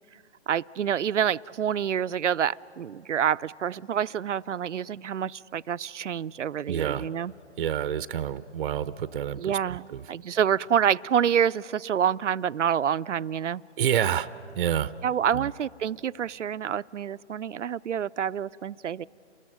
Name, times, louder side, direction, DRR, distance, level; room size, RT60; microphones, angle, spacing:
voice 1, 0.5-7.3 9.4-13.6 15.0-19.1, right 8 dB, 85° right, 16 dB, 0.6 m, -27 dB
voice 2, 6.7-7.1 7.6-10.0 13.8-14.3 14.6-14.9 15.3-15.5, right 9 dB, 45° right, 14 dB, 0.7 m, -28 dB
29.0 x 20.5 x 9.0 m, 2.6 s
hypercardioid pair, 140°, 36 cm